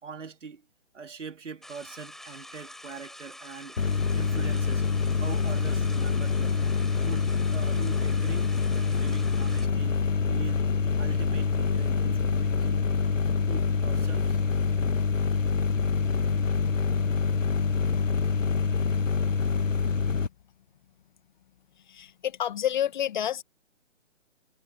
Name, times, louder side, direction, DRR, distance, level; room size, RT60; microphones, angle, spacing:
voice 1, 0.0-0.6 0.9-3.8 4.1-4.8 5.2-6.6 7.0-10.0 10.3-10.7 11.0-12.8 13.5-14.4, right 5 dB, 70° right, 4.1 m, -42 dB
sound 1, 1.6-9.6, left 1 dB, ahead, 5.4 m, -46 dB
sound 2, 3.8-20.3, left 5 dB, 85° left, 1.8 m, -26 dB
voice 2, 21.9-23.4, left 10 dB, 40° left, 1.9 m, -29 dB
hypercardioid pair, 155°, 37 cm